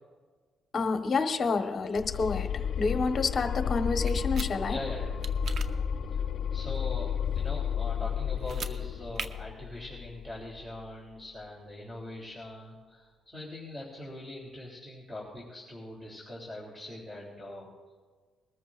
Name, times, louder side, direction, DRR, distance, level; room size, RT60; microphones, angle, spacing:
voice 1, 0.7-2.5 2.8-4.8, left 4 dB, 45° left, 5 dB, 1.3 m, -28 dB
sound 1, 2.0-10.9, left 7 dB, 60° left, 0.7 m, -32 dB
sound 2, 4.1-4.5 5.2-5.7 8.4-8.7 9.1-9.3, right 5 dB, 50° right, 0.8 m, -38 dB
voice 2, 4.6-5.1 6.1-6.2 6.5-17.7, left 1 dB, 5° right, -4 dB, 3.4 m, -42 dB
22.0 x 13.5 x 2.6 m, 1.5 s
cardioid pair, 90°, 0 cm